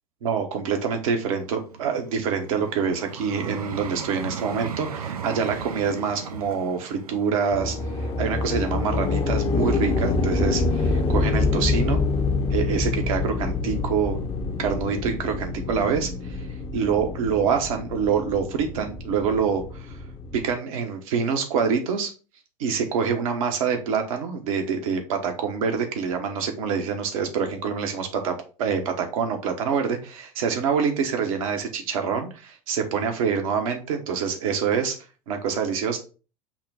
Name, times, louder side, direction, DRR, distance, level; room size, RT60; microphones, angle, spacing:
voice 1, 0.2-12.0 12.5-14.2 14.6-16.5 16.7-19.9 20.3-22.1 22.6-35.0 35.3-36.0, right 6 dB, 65° right, 4 dB, 1.0 m, -26 dB
Vehicle, 1.0-10.1 10.7-10.9, right 7 dB, 85° right, 0.5 m, -37 dB
sound 1, 7.5-20.5, left 3 dB, 30° left, 0.9 m, -26 dB
5.8 x 2.2 x 4.1 m, 0.35 s
figure-of-eight pair, 80°, 19 cm